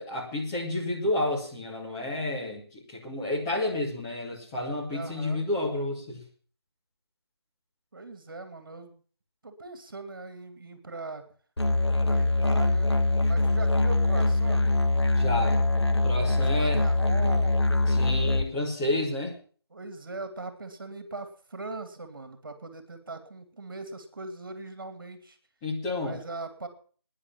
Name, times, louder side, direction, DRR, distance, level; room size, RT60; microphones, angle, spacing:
voice 1, 0.0-6.2 15.1-15.6 16.0-16.8 17.9-19.4 25.6-26.2, left 1 dB, 15° left, -3 dB, 2.5 m, -30 dB
voice 2, 4.9-5.4 7.9-9.0 9.4-11.3 12.0-12.9 13.3-14.7 16.2-17.6 19.7-25.4 26.0-26.7, right 3 dB, 55° right, 9 dB, 2.5 m, -40 dB
Musical instrument, 11.6-18.4, left 2 dB, 85° left, 1.8 m, -23 dB
11.5 x 10.0 x 7.3 m, 0.43 s
figure-of-eight pair, 160°, 14 cm